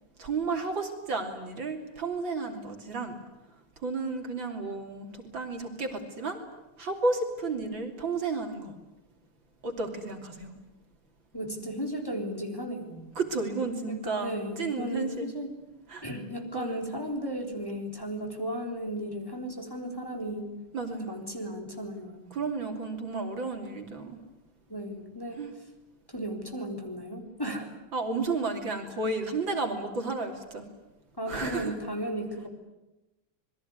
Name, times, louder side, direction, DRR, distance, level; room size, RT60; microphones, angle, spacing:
voice 1, 0.2-3.2 3.8-6.4 6.8-8.7 9.6-10.5 13.2-15.3 15.9-16.1 16.5-16.8 20.7-21.2 22.3-24.2 25.4-25.5 27.9-30.7 31.3-31.8, right 3 dB, 60° right, 4 dB, 3.8 m, -32 dB
voice 2, 11.3-13.1 13.9-15.5 16.0-20.5 21.0-22.4 24.7-25.4 26.1-27.7 31.2-32.5, equal, 10° left, 2 dB, 3.7 m, -35 dB
27.0 x 22.0 x 9.6 m, 0.97 s
omnidirectional pair, 2.4 m